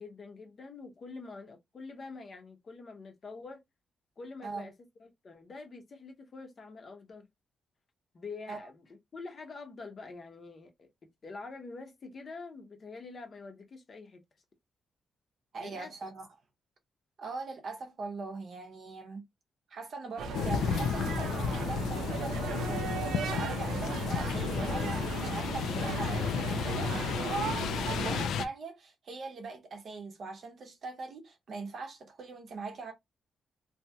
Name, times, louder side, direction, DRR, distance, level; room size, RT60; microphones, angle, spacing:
voice 1, 0.0-3.6 4.2-4.7 5.0-7.3 8.1-10.9 11.2-14.2 15.6-15.9, left 3 dB, 35° left, 0.8 m, -46 dB
voice 2, 15.5-16.3 17.2-19.2 19.7-26.9 27.9-32.9, right 3 dB, 50° right, 0.7 m, -41 dB
sound 1, 20.2-28.2, right 4 dB, 90° right, 0.5 m, -36 dB
sound 2, 20.3-28.4, left 7 dB, 80° left, 0.3 m, -33 dB
2.8 x 2.8 x 2.2 m
cardioid pair, 150°, 0 cm